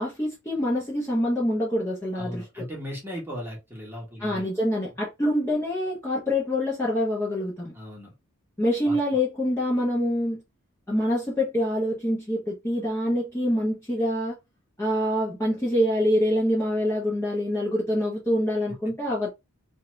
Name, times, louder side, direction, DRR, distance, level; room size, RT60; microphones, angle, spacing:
voice 1, 0.0-2.7 4.2-7.7 8.6-10.4 10.9-14.3 14.8-19.3, left 1 dB, 10° left, 0.8 m, -25 dB
voice 2, 2.1-4.4 7.7-8.1 8.8-9.0, equal, 10° right, 1.1 m, -37 dB
2.7 x 2.4 x 3.1 m
head